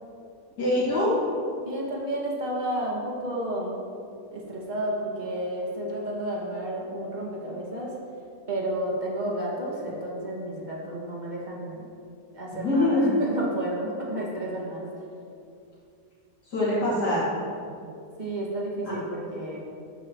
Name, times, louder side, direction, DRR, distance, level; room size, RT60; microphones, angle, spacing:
voice 1, 0.6-1.2 12.5-13.2 16.5-17.3 18.8-19.0, left 1 dB, 70° left, -9 dB, 3.1 m, -24 dB
voice 2, 1.7-3.7 4.3-8.0 8.5-11.8 12.3-14.9 18.2-19.6, right 1 dB, 25° right, -4 dB, 2.1 m, -31 dB
13.0 x 11.5 x 3.1 m, 2.5 s
omnidirectional pair, 1.9 m